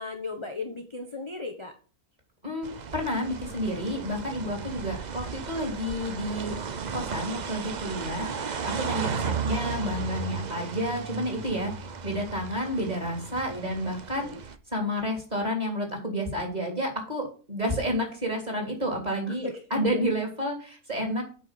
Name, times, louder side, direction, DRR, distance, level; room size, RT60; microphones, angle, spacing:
voice 1, 0.0-1.7 4.4-4.7 9.0-9.1 13.4-13.6 14.2-14.4 19.3-19.8, left 3 dB, 20° left, 4 dB, 1.0 m, -37 dB
voice 2, 2.4-6.6 6.9-8.3 8.6-11.7 12.0-14.3 14.7-21.2, equal, 25° right, 2 dB, 3.4 m, -30 dB
sound 1, 2.6-14.5, right 6 dB, 45° right, 0.6 m, -35 dB
8.4 x 5.7 x 7.6 m, 0.38 s
omnidirectional pair, 1.6 m